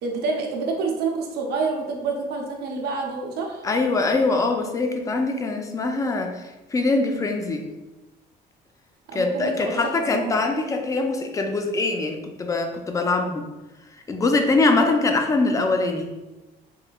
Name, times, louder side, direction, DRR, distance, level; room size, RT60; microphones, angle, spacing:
voice 1, 0.0-3.6 9.1-10.4, right 4 dB, 70° right, 1 dB, 0.6 m, -28 dB
voice 2, 3.6-7.6 9.1-13.4 14.1-16.1, left 3 dB, 20° left, 4 dB, 0.4 m, -23 dB
3.3 x 3.0 x 2.2 m, 1.1 s
cardioid pair, 110°, 17 cm